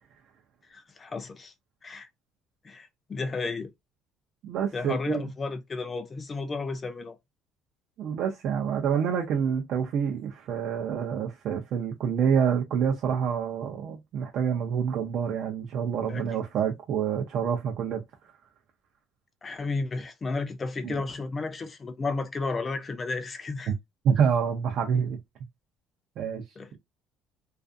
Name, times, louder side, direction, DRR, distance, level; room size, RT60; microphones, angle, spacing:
voice 1, 0.7-1.5 1.8-2.1 2.6-3.7 4.7-7.2 16.1-16.2 19.4-23.7 26.6-26.7, left 3 dB, 20° left, 0.4 m, -33 dB
voice 2, 4.4-5.3 8.0-18.0 20.8-20.9 23.7-23.8 24.0-25.2 26.2-26.4, right 7 dB, 50° right, 0.5 m, -27 dB
2.4 x 2.3 x 2.5 m
cardioid pair, 160°, 0 cm